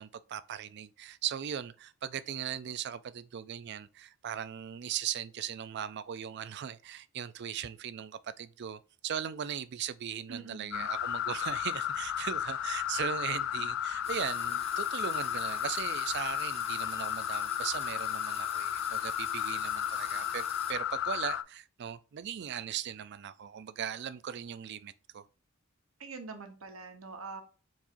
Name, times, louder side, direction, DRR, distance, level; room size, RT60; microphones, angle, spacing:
voice 1, 0.0-25.3, right 9 dB, 55° right, 0.4 m, -38 dB
voice 2, 10.3-10.9 26.0-27.4, right 4 dB, 80° right, 1.1 m, -44 dB
sound 1, 10.7-21.4, left 10 dB, 65° left, 0.3 m, -33 dB
sound 2, 14.0-20.7, left 4 dB, 30° left, 1.2 m, -47 dB
4.7 x 4.2 x 2.6 m
head